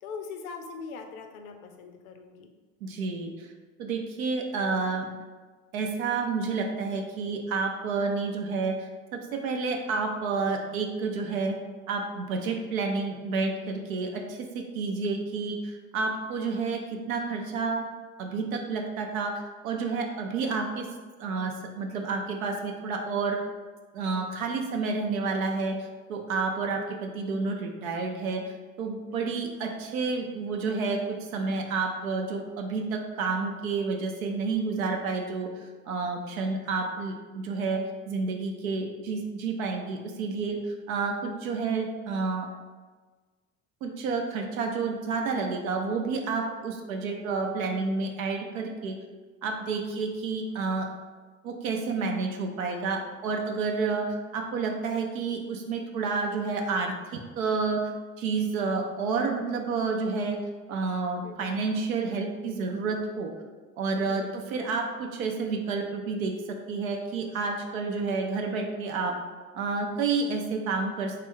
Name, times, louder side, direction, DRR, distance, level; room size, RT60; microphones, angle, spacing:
voice 1, 0.0-2.5 16.0-16.2 26.5-26.6 29.1-29.3 40.5-40.6 49.7-50.0 61.2-61.5 64.1-64.4, left 5 dB, 80° left, 5 dB, 0.6 m, -42 dB
voice 2, 2.8-3.5 3.8-5.1 5.7-11.6 11.9-16.8 17.1-17.9 18.2-20.9 21.2-23.4 23.9-40.6 40.9-42.5 43.8-49.0 49.4-50.9 51.4-54.1 54.3-57.9 58.2-60.4 60.7-63.3 63.8-69.1 69.5-71.2, right 4 dB, 80° right, 3 dB, 0.6 m, -30 dB
3.2 x 2.4 x 3.7 m, 1.3 s
hypercardioid pair, 70°, 41 cm